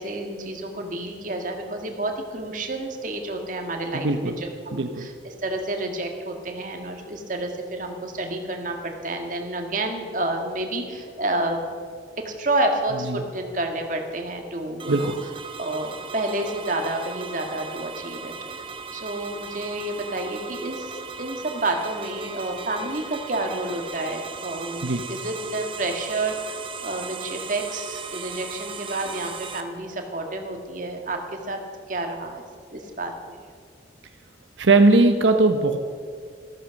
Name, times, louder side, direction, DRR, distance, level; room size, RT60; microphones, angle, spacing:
voice 1, 0.0-11.6 12.2-15.1 15.6-18.3 18.9-26.6 26.8-31.6 31.9-32.4 32.7-33.4, right 2 dB, 45° right, 3 dB, 1.7 m, -29 dB
voice 2, 3.9-4.3 4.7-5.1 13.1-13.2 14.9-15.1 24.8-25.0 34.6-35.8, right 2 dB, 80° right, 6 dB, 0.8 m, -19 dB
sound 1, 14.8-29.6, right 5 dB, 25° right, 0.9 m, -37 dB
13.5 x 13.5 x 6.3 m, 2.2 s
head